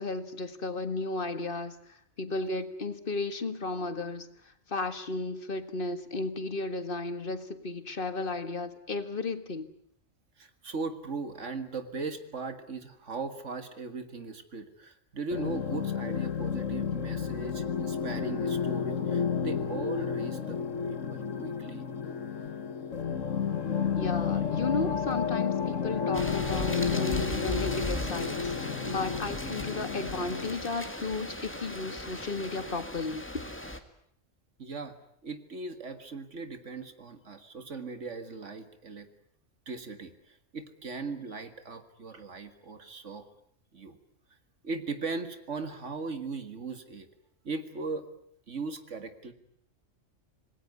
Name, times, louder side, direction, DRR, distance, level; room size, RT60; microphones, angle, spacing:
voice 1, 0.0-1.8 2.2-9.7 23.9-33.2, left 3 dB, 45° left, 11 dB, 1.9 m, -34 dB
voice 2, 10.4-20.6 20.9-21.9 34.6-35.0 35.2-39.1 39.7-43.3 43.7-44.0 44.6-47.1 47.4-48.1 48.5-49.3, right 3 dB, 70° right, 9 dB, 2.1 m, -38 dB
sound 1, 15.3-30.5, left 6 dB, 80° left, 1.7 m, -31 dB
sound 2, 26.1-33.8, left 1 dB, 10° left, 2.0 m, -37 dB
27.0 x 20.0 x 9.5 m, 0.67 s
omnidirectional pair, 1.3 m